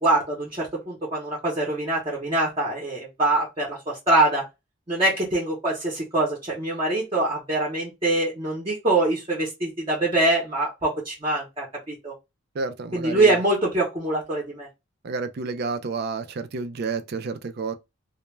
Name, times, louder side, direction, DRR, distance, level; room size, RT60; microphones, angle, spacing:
voice 1, 0.0-4.4 4.9-12.1 12.9-14.7, right 2 dB, 25° right, 0.7 m, -24 dB
voice 2, 12.5-13.4 15.0-17.7, right 4 dB, 50° right, 0.4 m, -30 dB
2.2 x 2.1 x 3.1 m
head